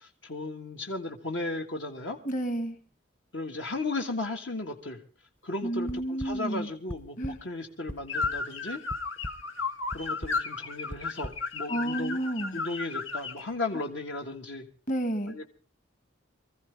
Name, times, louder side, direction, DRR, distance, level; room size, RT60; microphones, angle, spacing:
voice 1, 0.0-2.2 3.3-5.0 5.4-8.8 9.9-12.2 12.5-14.7 15.3-15.4, left 2 dB, 70° left, 3 dB, 1.6 m, -35 dB
voice 2, 2.2-2.8 5.6-6.7 7.2-7.4 11.7-12.6 14.9-15.4, right 1 dB, 40° left, 9 dB, 2.1 m, -31 dB
sound 1, 5.9-6.3 6.9-7.3 7.7-8.3 8.9-9.3 9.9-10.3 10.9-11.3, equal, 10° left, 0.7 m, -37 dB
sound 2, 8.1-13.4, left 4 dB, 85° left, 2.0 m, -34 dB
24.5 x 15.0 x 3.4 m, 0.36 s
head